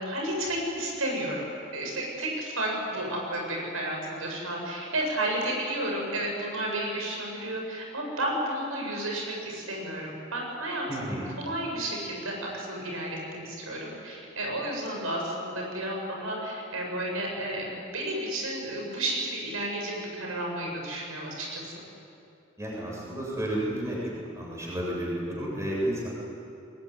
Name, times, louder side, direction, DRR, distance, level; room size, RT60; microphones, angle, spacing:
voice 1, 0.0-1.4 1.7-21.7, right 1 dB, 90° right, -1 dB, 7.5 m, -32 dB
voice 2, 10.9-11.3 22.6-24.0 24.3-26.1, right 1 dB, 15° right, -4 dB, 7.4 m, -31 dB
22.5 x 22.5 x 9.9 m, 2.6 s
head